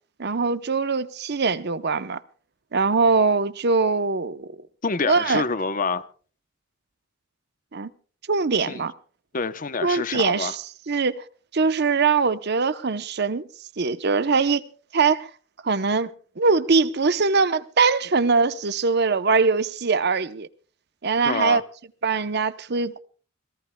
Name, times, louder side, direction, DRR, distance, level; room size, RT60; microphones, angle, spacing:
voice 1, 0.2-2.2 2.7-4.5 5.1-5.4 7.7-7.9 8.3-8.9 9.8-11.2 11.5-13.4 13.8-14.6 14.9-15.3 15.6-16.1 16.4-20.5 21.0-21.6 22.0-23.0, right 4 dB, 55° right, 0.8 m, -22 dB
voice 2, 4.8-6.1 8.7-8.8 9.3-10.5 21.2-21.6, left 4 dB, 40° left, 0.8 m, -26 dB
26.5 x 18.0 x 2.2 m
head